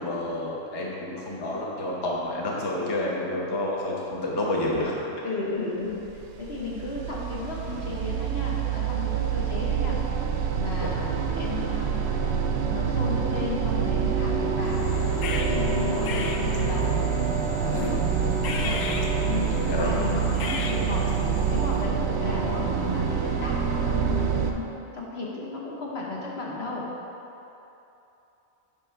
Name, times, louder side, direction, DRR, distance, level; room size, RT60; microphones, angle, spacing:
voice 1, 0.0-4.9 10.8-10.9 15.7-15.8 17.7-17.9 19.7-19.9, left 1 dB, 25° left, -4 dB, 0.8 m, -29 dB
voice 2, 5.2-6.0 6.4-10.0 10.6-12.0 12.5-14.8 15.3-16.9 17.5-18.0 18.4-18.8 19.2-21.1 21.5-24.7 24.9-26.9, left 3 dB, 55° left, -4 dB, 1.2 m, -34 dB
sound 1, 6.1-24.5, right 6 dB, 65° right, 0.8 m, -26 dB
sound 2, 14.6-21.9, left 4 dB, 85° left, 1.0 m, -35 dB
9.4 x 3.2 x 5.6 m, 2.9 s
omnidirectional pair, 1.3 m